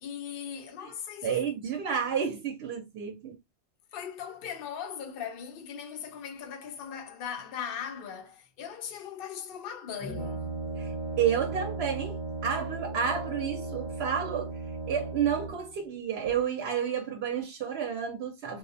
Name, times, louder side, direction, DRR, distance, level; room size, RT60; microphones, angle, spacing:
voice 1, 0.0-1.4 3.9-10.6, left 8 dB, 60° left, 0.7 m, -39 dB
voice 2, 1.2-3.4 10.8-18.6, right 8 dB, 70° right, 0.8 m, -31 dB
Brass instrument, 10.0-15.8, right 3 dB, 25° left, 0.7 m, -36 dB
2.5 x 2.0 x 2.6 m
omnidirectional pair, 1.1 m